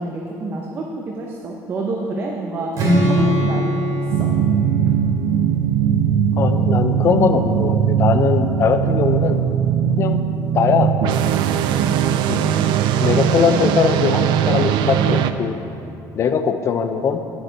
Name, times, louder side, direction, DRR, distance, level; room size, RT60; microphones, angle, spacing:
voice 1, 0.0-2.7 3.1-3.8 4.1-4.3, right 2 dB, 30° right, -1 dB, 0.7 m, -28 dB
Strum, 2.7-6.9, right 1 dB, 45° right, 2.5 m, -22 dB
sound 1, 4.1-15.3, right 9 dB, 80° right, 0.4 m, -19 dB
voice 2, 6.4-9.4 10.0-10.2 10.5-10.9 12.3-12.5 13.0-15.6 16.1-17.2, left 6 dB, 35° left, 9 dB, 0.5 m, -20 dB
9.4 x 8.4 x 4.5 m, 2.7 s
cardioid pair, 175°, 8 cm